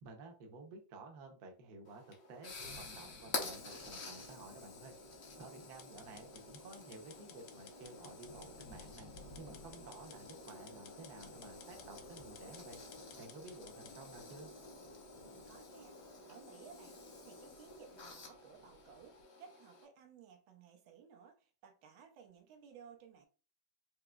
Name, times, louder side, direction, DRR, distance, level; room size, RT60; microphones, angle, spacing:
voice 1, 0.0-4.9 5.4-9.1 9.4-12.8 13.2-14.5, right 3 dB, 60° right, 3 dB, 1.2 m, -53 dB
sound 1, 1.9-19.8, left 3 dB, 55° left, 0.7 m, -49 dB
sound 2, 2.4-19.2, left 1 dB, 70° left, 1.5 m, -62 dB
sound 3, 5.8-14.0, left 8 dB, 90° left, 0.7 m, -58 dB
voice 2, 15.2-23.3, right 6 dB, 85° right, 4 dB, 1.5 m, -58 dB
4.8 x 2.9 x 2.2 m, 0.36 s
omnidirectional pair, 2.1 m